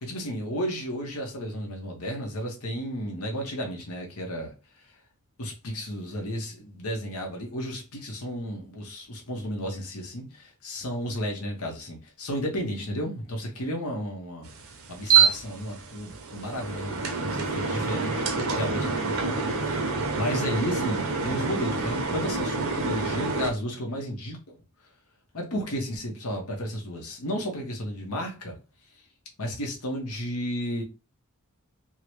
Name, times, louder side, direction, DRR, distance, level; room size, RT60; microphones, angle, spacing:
voice 1, 0.0-4.9 5.4-14.5 14.9-19.8 20.2-24.5 25.3-28.6 29.4-30.8, equal, 80° left, 1.0 m, -33 dB
sound 1, 14.4-23.5, right 5 dB, 65° right, 0.7 m, -27 dB
3.7 x 2.2 x 3.1 m
head